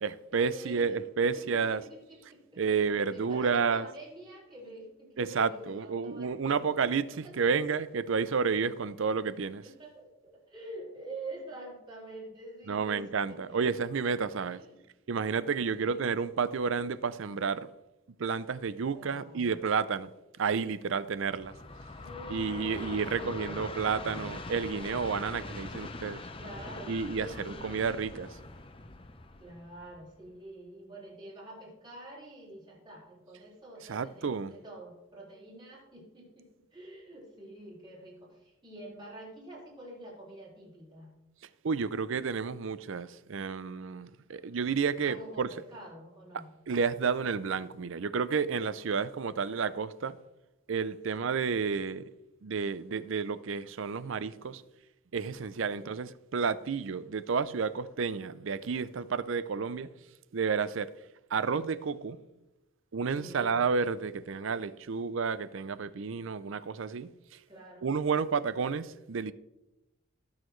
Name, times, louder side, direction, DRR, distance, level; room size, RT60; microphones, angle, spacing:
voice 1, 0.0-1.8 2.6-3.9 5.2-9.6 12.7-14.6 15.1-17.7 18.2-20.1 20.4-21.5 22.3-26.2 26.9-28.4 33.9-34.6 41.6-45.5 46.7-50.2 50.7-52.1 52.4-54.6 55.1-59.9 60.3-60.9 61.3-62.2 62.9-67.1 67.8-69.3, right 5 dB, 65° right, 0.5 m, -31 dB
voice 2, 0.5-1.0 1.3-6.8 7.2-7.3 9.6-13.8 14.5-14.8 15.7-16.0 18.9-19.6 22.0-23.8 26.4-28.0 29.4-41.1 45.0-46.5 51.1-51.3 55.8-55.9 63.1-63.7 67.5-67.9, right 1 dB, 20° right, 4.1 m, -47 dB
Train, 21.1-30.4, left 2 dB, 25° left, 0.7 m, -43 dB
19.0 x 6.4 x 3.2 m
head